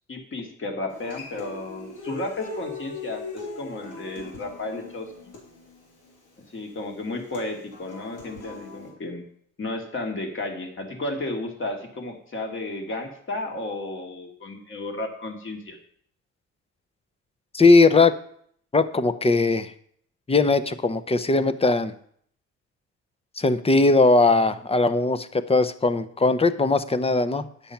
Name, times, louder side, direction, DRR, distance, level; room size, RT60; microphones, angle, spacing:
voice 1, 0.1-5.3 6.5-9.2 9.6-15.8, left 2 dB, 40° left, 3 dB, 2.5 m, -33 dB
Human voice / Acoustic guitar, 0.9-8.9, left 3 dB, 85° left, 3.9 m, -40 dB
voice 2, 17.5-18.1 18.7-19.7 20.3-21.9 23.4-27.4, left 3 dB, 20° left, 13 dB, 0.8 m, -19 dB
10.0 x 6.9 x 5.9 m, 0.64 s
cardioid pair, 90°, 30 cm